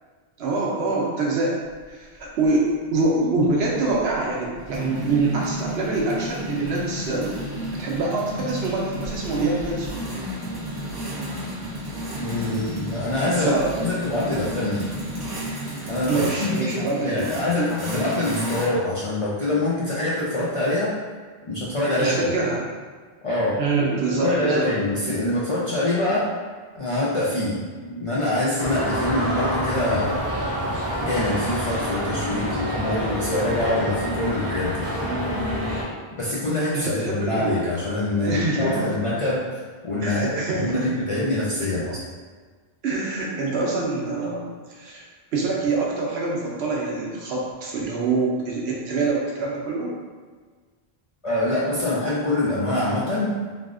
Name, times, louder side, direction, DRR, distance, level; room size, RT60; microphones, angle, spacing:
voice 1, 0.4-1.6 1.9-7.3 7.8-10.2 13.3-13.7 16.1-17.3 17.6-17.7 22.0-22.7 23.6-24.7 36.7-37.6 38.2-38.9 40.0-40.9 42.8-44.5 44.7-45.0 45.3-49.9, right 3 dB, 80° right, -3 dB, 0.9 m, -25 dB
Motocross bike starting and ticking over, 1.8-1.9 2.2-2.5 3.7-18.7, equal, 40° right, 0.3 m, -32 dB
voice 2, 12.2-14.9 15.9-20.9 21.5-22.3 23.2-23.6 24.1-26.3 26.7-30.2 31.0-34.9 36.2-42.0 51.2-53.3, left 1 dB, 50° left, -8 dB, 0.4 m, -25 dB
sound 1, 28.6-35.8, equal, 15° right, 0.7 m, -27 dB
3.4 x 2.4 x 2.4 m, 1.5 s
omnidirectional pair, 1.1 m